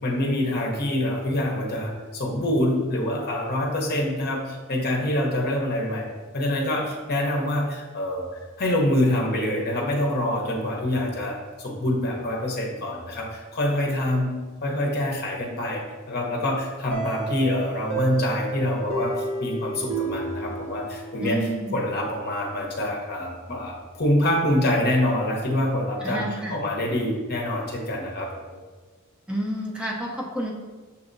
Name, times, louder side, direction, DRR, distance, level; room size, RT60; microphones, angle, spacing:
voice 1, 0.0-6.1 6.3-8.3 8.6-14.3 14.6-21.4 21.7-26.2 26.5-28.6, left 1 dB, 50° left, 0 dB, 0.8 m, -25 dB
sound 1, 16.9-21.6, right 4 dB, 60° right, 0.9 m, -31 dB
voice 2, 21.2-21.8 26.0-26.6 29.3-30.5, right 1 dB, 5° right, -3 dB, 0.6 m, -30 dB
6.8 x 2.7 x 2.6 m, 1.3 s
head